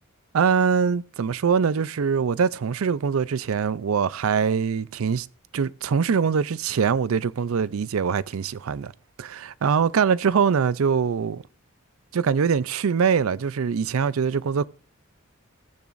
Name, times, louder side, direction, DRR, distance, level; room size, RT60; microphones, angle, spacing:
voice 1, 0.3-5.3 5.5-8.9 9.2-11.4 12.1-14.7, right 6 dB, 75° right, 0.5 m, -23 dB
20.5 x 6.9 x 2.6 m
head